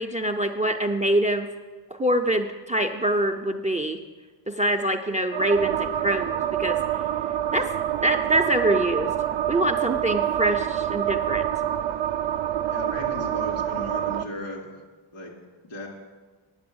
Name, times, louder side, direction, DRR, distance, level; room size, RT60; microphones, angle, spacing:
voice 1, 0.0-1.5 2.0-4.0 4.5-6.8 7.5-7.7 8.0-9.1 9.5-11.4, right 1 dB, 15° right, 6 dB, 0.4 m, -24 dB
sound 1, 5.3-14.2, right 11 dB, 70° right, 0.5 m, -26 dB
voice 2, 12.7-14.7 15.1-15.3 15.7-15.9, left 1 dB, 80° left, 0 dB, 2.7 m, -35 dB
9.5 x 6.8 x 7.7 m, 1.3 s
wide cardioid pair, 150°, 49 cm